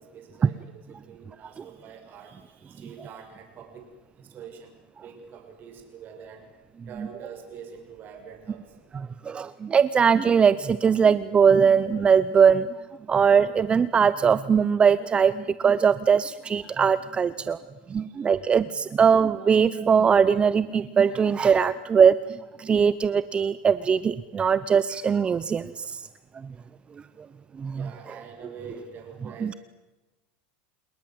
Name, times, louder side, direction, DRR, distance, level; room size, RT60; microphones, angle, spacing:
voice 1, 0.0-3.9 4.2-4.8 5.0-6.4 6.9-8.6 17.9-18.0 27.7-29.6, right 7 dB, 40° right, 4 dB, 6.9 m, -45 dB
voice 2, 9.2-12.7 13.1-17.6 17.9-26.0 27.6-27.9 29.4-29.5, right 6 dB, 20° right, 15 dB, 0.7 m, -21 dB
30.0 x 19.0 x 7.9 m, 1.1 s
supercardioid pair, 130°, 5 cm